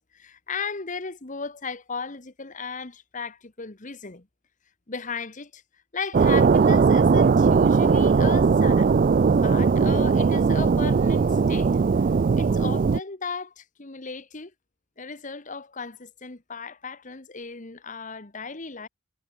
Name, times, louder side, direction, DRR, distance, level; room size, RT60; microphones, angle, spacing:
voice 1, 0.0-4.3 4.9-5.6 5.9-8.9 9.3-11.7 12.4-14.5 15.0-18.9, left 5 dB, 40° left, 1.4 m, -36 dB
sound 1, 6.1-13.0, right 5 dB, 45° right, 0.3 m, -19 dB
head